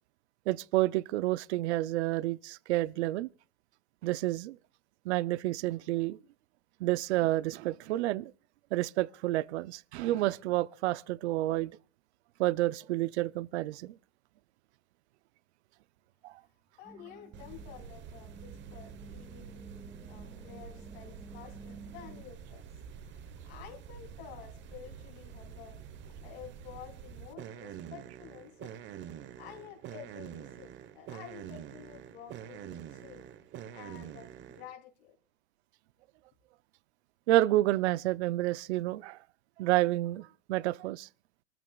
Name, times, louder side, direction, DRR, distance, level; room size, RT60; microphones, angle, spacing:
voice 1, 0.5-3.3 4.0-4.6 5.1-6.2 6.8-8.3 8.7-11.7 12.4-14.0 16.2-16.4 37.3-39.2 39.6-41.1, right 16 dB, 80° right, 0.6 m, -29 dB
voice 2, 16.8-22.7 23.0-28.7 29.4-33.3 33.7-35.1, left 9 dB, 65° left, 3.1 m, -51 dB
sound 1, 16.8-22.2, right 3 dB, 5° right, 1.2 m, -52 dB
sound 2, 17.3-34.7, right 8 dB, 35° right, 1.0 m, -47 dB
25.5 x 14.0 x 2.3 m
supercardioid pair, 135°, 33 cm